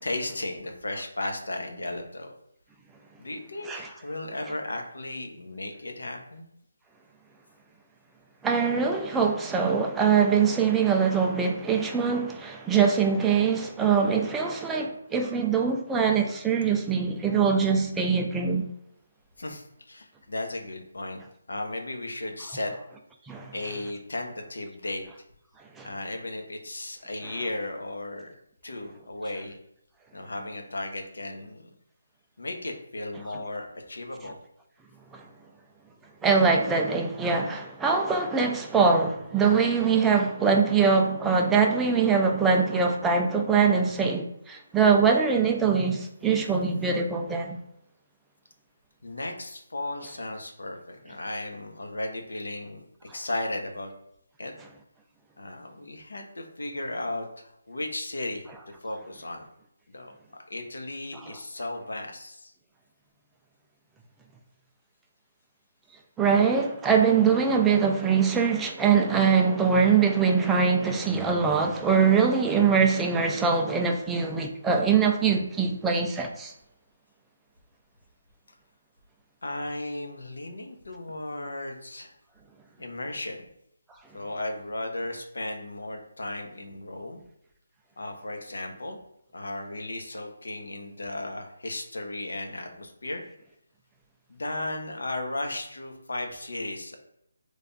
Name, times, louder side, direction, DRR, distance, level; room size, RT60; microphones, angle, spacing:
voice 1, 0.0-2.3 3.2-6.5 19.4-21.2 21.5-22.7 23.5-25.0 25.8-28.3 28.6-29.6 30.1-31.7 32.4-34.4 49.0-52.8 53.1-53.9 54.4-54.5 55.4-58.5 58.8-59.5 59.9-60.1 60.5-62.5 79.4-82.1 82.8-83.4 84.1-87.2 88.0-89.0 89.3-93.2 94.3-97.0, left 2 dB, 85° left, 0.8 m, -35 dB
voice 2, 8.4-18.7 23.3-23.5 25.8-25.9 35.1-35.2 36.2-47.6 66.2-76.5, right 5 dB, 5° right, 0.3 m, -23 dB
3.3 x 2.3 x 3.9 m
hypercardioid pair, 170°, 0 cm